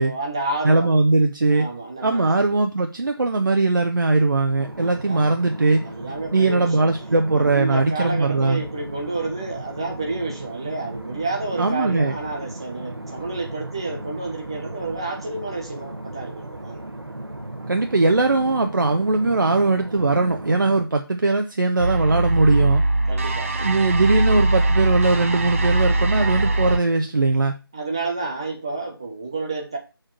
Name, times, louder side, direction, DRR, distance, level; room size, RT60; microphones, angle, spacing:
voice 1, 0.0-0.9 1.5-2.3 4.7-5.2 5.8-6.9 7.3-16.8 23.1-23.6 27.7-29.8, right 3 dB, 15° right, 0 dB, 0.4 m, -30 dB
voice 2, 0.6-1.7 2.0-5.9 6.3-8.6 11.6-12.1 17.7-22.8 23.6-27.5, right 3 dB, 55° right, 5 dB, 0.8 m, -20 dB
sound 1, 4.6-20.8, right 1 dB, 80° right, 1.3 m, -36 dB
sound 2, 21.8-26.8, right 2 dB, 35° right, 0.9 m, -21 dB
6.6 x 3.8 x 6.0 m, 0.29 s
figure-of-eight pair, 160°, 13 cm